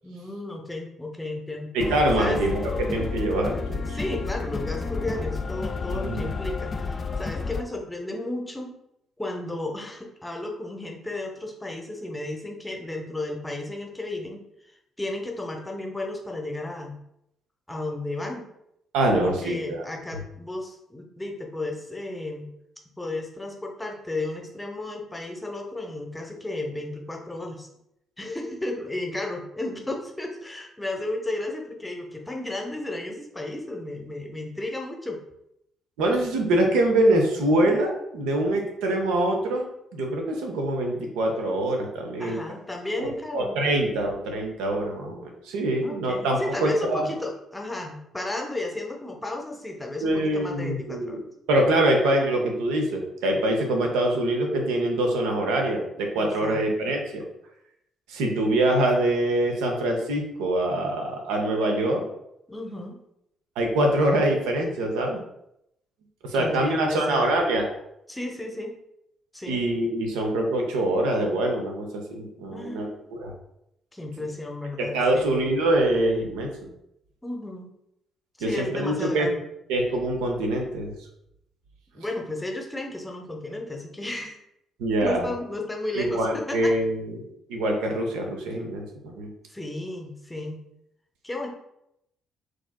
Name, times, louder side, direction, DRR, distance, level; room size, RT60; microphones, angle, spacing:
voice 1, 0.0-1.7 2.2-2.4 3.8-8.7 9.2-14.4 15.0-16.9 17.7-18.5 19.2-22.5 23.0-27.7 28.2-35.2 42.2-43.6 45.8-51.2 56.1-56.6 62.5-63.0 66.3-67.2 68.1-68.8 69.3-69.6 72.5-73.0 73.9-75.4 77.2-77.7 78.4-79.4 81.9-84.4 85.0-86.7 89.5-90.6 91.2-91.5, left 2 dB, 15° left, 1 dB, 0.8 m, -33 dB
voice 2, 1.7-4.0 5.9-6.3 18.9-19.9 36.0-39.6 39.9-42.4 43.0-47.1 50.0-51.2 51.5-57.2 58.1-62.0 63.6-65.2 66.2-67.6 69.5-73.3 74.8-76.7 78.4-79.3 79.7-80.9 84.8-85.3 85.9-87.2 87.5-89.3, right 1 dB, 65° right, 2 dB, 0.5 m, -24 dB
sound 1, 1.8-7.6, left 4 dB, 35° left, 0.3 m, -31 dB
4.3 x 3.0 x 2.2 m, 0.80 s
figure-of-eight pair, 40°, 0 cm